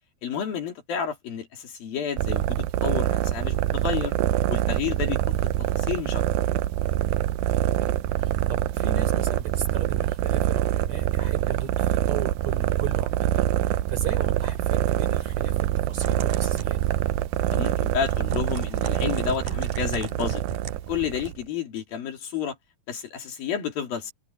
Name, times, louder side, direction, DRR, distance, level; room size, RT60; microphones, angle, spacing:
voice 1, 0.2-4.1 4.5-6.2 17.5-20.4 20.9-22.6 22.9-24.1, left 8 dB, 65° left, 4.6 m, -31 dB
sound 1, 2.2-21.4, right 14 dB, 80° right, 2.4 m, -25 dB
voice 2, 7.8-15.5 15.9-16.8, right 6 dB, 45° right, 4.8 m, -38 dB
Typing, 15.9-21.3, right 5 dB, 60° right, 2.8 m, -39 dB
omnidirectional pair, 4.6 m